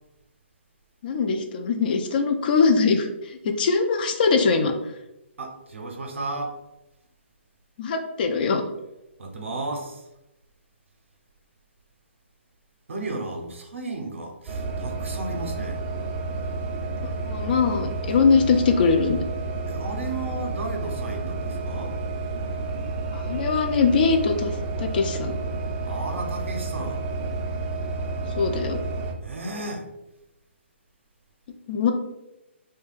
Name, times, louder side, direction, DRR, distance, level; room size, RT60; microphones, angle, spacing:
voice 1, 1.0-4.7 7.8-8.6 17.3-19.2 23.1-24.5 24.8-25.4 28.4-28.8 31.7-31.9, left 5 dB, 45° left, 5 dB, 0.4 m, -22 dB
voice 2, 5.4-6.6 9.2-10.0 12.9-15.8 19.7-21.9 25.8-27.0 29.2-29.9, right 2 dB, 80° right, 3 dB, 0.6 m, -34 dB
sound 1, 14.5-29.1, right 3 dB, 20° right, 0.4 m, -30 dB
2.3 x 2.1 x 3.1 m, 0.92 s
hypercardioid pair, 140°, 7 cm